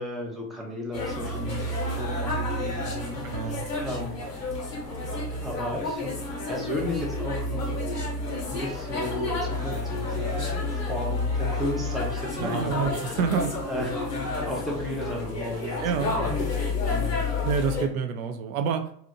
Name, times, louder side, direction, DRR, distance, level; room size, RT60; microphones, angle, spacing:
voice 1, 0.0-4.2 5.4-6.1 6.5-7.8 8.5-12.9 13.7-13.9 14.5-16.3 16.9-17.2, left 1 dB, ahead, -1 dB, 0.5 m, -34 dB
sound 1, 0.9-17.8, left 2 dB, 80° left, 1.0 m, -30 dB
voice 2, 3.2-3.6 12.4-13.5 15.8-16.1 17.4-18.9, right 6 dB, 60° right, 6 dB, 0.5 m, -27 dB
Trumpet, 8.7-16.7, right 2 dB, 40° right, 1.0 m, -50 dB
2.7 x 2.4 x 2.7 m, 0.64 s
figure-of-eight pair, 70°, 48 cm